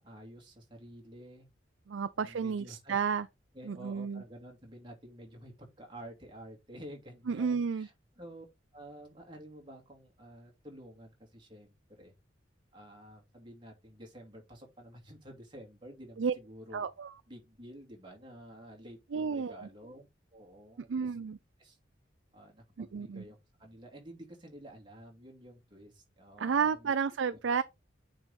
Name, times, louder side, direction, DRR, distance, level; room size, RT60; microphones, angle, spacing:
voice 1, 0.0-1.5 2.1-3.0 3.5-8.5 8.7-12.1 12.7-16.9 17.3-21.1 21.6-21.8 22.3-26.9 27.3-27.4, equal, 25° right, 2.5 m, -50 dB
voice 2, 1.9-3.3 3.6-4.2 7.3-7.9 16.2-16.3 16.7-17.1 19.1-19.7 20.9-21.4 22.8-23.2 26.4-27.6, right 6 dB, 75° right, 0.4 m, -31 dB
9.0 x 4.1 x 3.6 m
head